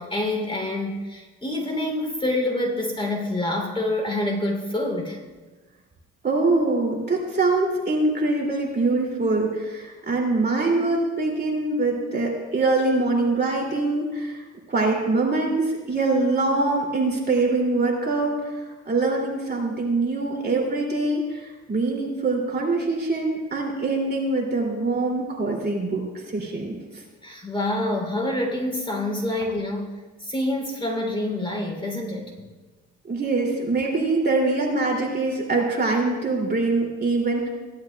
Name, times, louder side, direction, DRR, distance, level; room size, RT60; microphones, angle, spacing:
voice 1, 0.0-5.2 27.2-29.9 30.2-32.3, left 1 dB, 20° left, 0 dB, 3.1 m, -27 dB
voice 2, 6.2-14.4 14.7-18.3 18.9-21.2 21.7-26.0 26.3-26.7 33.1-37.5, right 3 dB, 35° right, -1 dB, 2.6 m, -23 dB
17.0 x 11.5 x 2.3 m, 1.3 s
cardioid pair, 90°, 30 cm